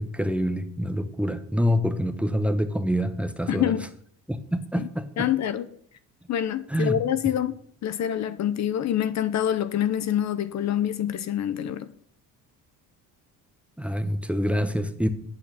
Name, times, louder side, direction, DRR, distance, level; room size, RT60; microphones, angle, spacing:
voice 1, 0.0-3.7 4.3-5.3 6.7-7.0 13.8-15.1, equal, 5° right, 0.8 m, -26 dB
voice 2, 3.5-3.9 4.8-4.9 5.2-5.7 6.3-7.6 7.8-11.9, left 10 dB, 45° left, 0.7 m, -26 dB
8.9 x 6.2 x 8.5 m
cardioid pair, 135°, 37 cm